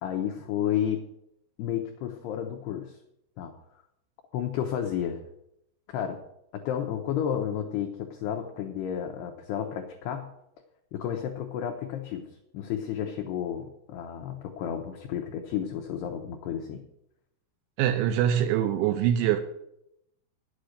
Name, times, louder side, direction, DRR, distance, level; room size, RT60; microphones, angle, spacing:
voice 1, 0.0-1.0 1.6-3.0 3.4-3.5 4.3-5.2 5.9-6.2 6.5-10.3 10.9-12.2 12.5-16.8, left 9 dB, 80° left, 3 dB, 2.4 m, -31 dB
voice 2, 17.8-19.4, right 10 dB, 80° right, 8 dB, 2.8 m, -24 dB
10.0 x 8.7 x 6.5 m, 0.81 s
omnidirectional pair, 6.0 m